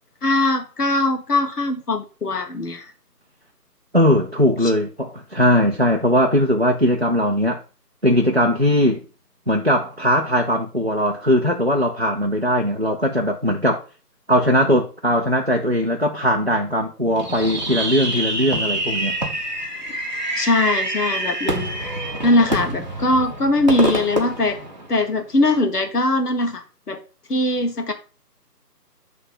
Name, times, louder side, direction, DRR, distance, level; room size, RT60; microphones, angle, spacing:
voice 1, 0.2-2.8 4.6-4.7 20.4-21.7 22.2-24.6 24.9-27.0 27.3-27.9, left 2 dB, 70° left, 1.4 m, -21 dB
voice 2, 3.9-7.6 8.0-9.0 9.5-13.8 14.3-19.2, equal, 45° right, 0.4 m, -19 dB
Fireworks, 17.2-25.3, right 1 dB, 30° right, 1.0 m, -26 dB
7.1 x 3.3 x 5.3 m
figure-of-eight pair, 170°, 48 cm